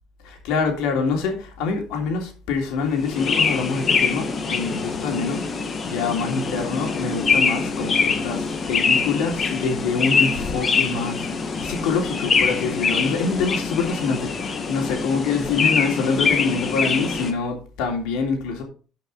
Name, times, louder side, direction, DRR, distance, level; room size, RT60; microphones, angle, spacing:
voice 1, 0.2-18.6, left 5 dB, 80° left, 3.1 m, -25 dB
sound 1, 3.0-17.3, left 5 dB, 35° left, 1.7 m, -24 dB
12.0 x 5.9 x 4.1 m
cardioid pair, 110°, 0 cm